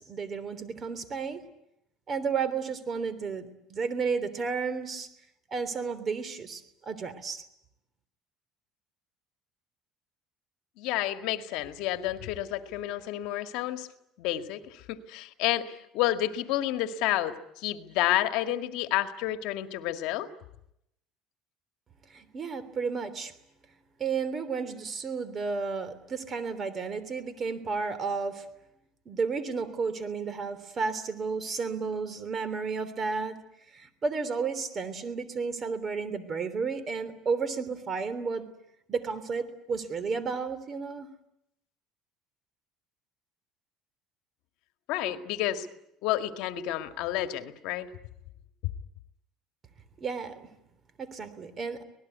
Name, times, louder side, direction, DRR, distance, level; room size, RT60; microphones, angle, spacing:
voice 1, 0.0-1.4 2.1-5.1 5.5-7.4 22.1-23.3 24.0-28.4 29.0-33.4 33.7-38.5 38.9-41.1 50.0-50.3 51.0-51.8, right 5 dB, 30° right, 14 dB, 3.3 m, -32 dB
voice 2, 10.8-13.9 14.2-20.3 44.9-45.7 46.0-47.9, left 13 dB, 75° left, 8 dB, 1.9 m, -30 dB
25.5 x 19.5 x 9.5 m, 0.79 s
cardioid pair, 130°, 0 cm